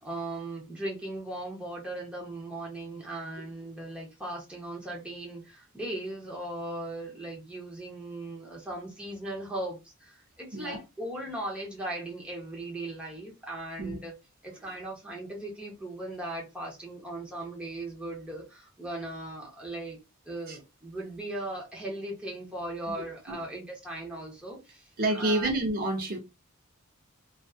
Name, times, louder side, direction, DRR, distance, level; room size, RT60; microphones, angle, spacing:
voice 1, 0.0-14.1 14.4-20.0 20.2-25.5, right 1 dB, 5° right, 0.8 m, -38 dB
voice 2, 25.0-26.2, right 1 dB, 45° right, 0.6 m, -28 dB
2.5 x 2.4 x 2.4 m
head